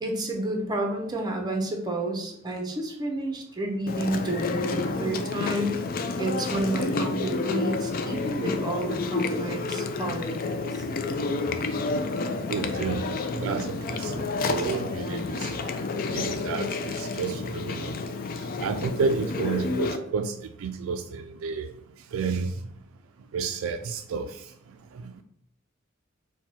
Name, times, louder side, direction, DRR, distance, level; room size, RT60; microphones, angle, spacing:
voice 1, 0.0-5.8 6.2-10.8, right 1 dB, 20° right, 2 dB, 0.7 m, -30 dB
Chewing mastication, 3.9-20.0, left 3 dB, 45° left, 0.4 m, -30 dB
voice 2, 12.5-15.5 16.1-18.0 18.6-21.7 22.1-22.7 23.3-24.5 24.9-25.1, right 5 dB, 70° right, 8 dB, 0.3 m, -31 dB
4.5 x 2.2 x 4.1 m, 0.71 s
head